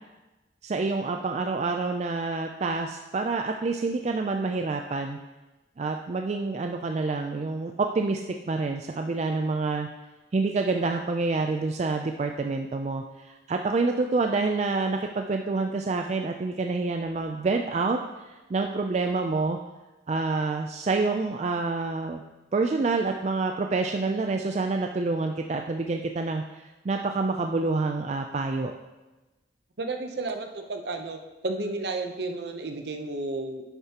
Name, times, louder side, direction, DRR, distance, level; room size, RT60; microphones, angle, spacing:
voice 1, 0.6-5.2 5.8-8.2 8.5-9.9 10.3-18.0 18.3-19.6 20.1-22.2 22.5-28.7, right 3 dB, 40° right, 4 dB, 0.4 m, -27 dB
voice 2, 29.8-33.6, right 2 dB, 65° right, 5 dB, 0.8 m, -32 dB
10.5 x 6.8 x 2.9 m, 1.1 s
head